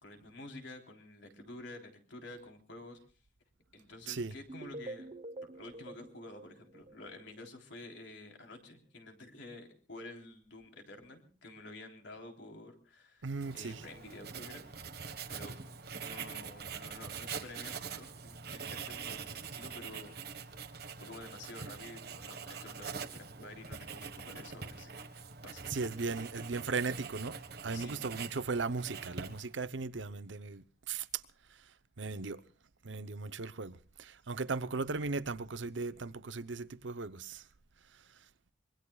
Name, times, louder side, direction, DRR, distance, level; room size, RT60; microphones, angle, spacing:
voice 1, 0.0-3.0 3.7-5.1 5.5-14.7 15.3-15.6 15.9-20.2 21.0-25.1 25.4-25.7 27.7-28.0, left 2 dB, 65° left, 3.6 m, -50 dB
sound 1, 4.5-7.4, right 2 dB, 35° right, 1.0 m, -47 dB
voice 2, 13.2-13.8 25.7-31.2 31.5-32.4 32.8-37.5 37.9-38.2, right 4 dB, 70° right, 0.8 m, -37 dB
Writing, 13.4-29.6, right 5 dB, 55° right, 1.4 m, -44 dB
25.0 x 22.5 x 2.4 m
head